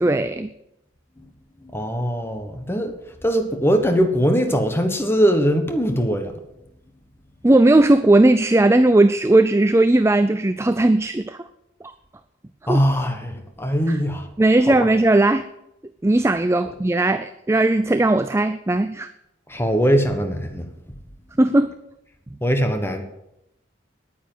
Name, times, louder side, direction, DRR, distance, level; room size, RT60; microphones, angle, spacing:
voice 1, 0.0-0.5 7.4-11.5 12.7-12.8 13.9-14.0 14.4-15.5 16.0-19.1 21.4-21.7, right 2 dB, 15° right, 11 dB, 0.4 m, -17 dB
voice 2, 1.6-2.9 3.2-6.3 12.7-14.3 14.7-14.9 19.5-20.6 22.4-23.0, equal, 10° left, 6 dB, 1.3 m, -21 dB
10.5 x 9.5 x 8.9 m, 0.83 s
head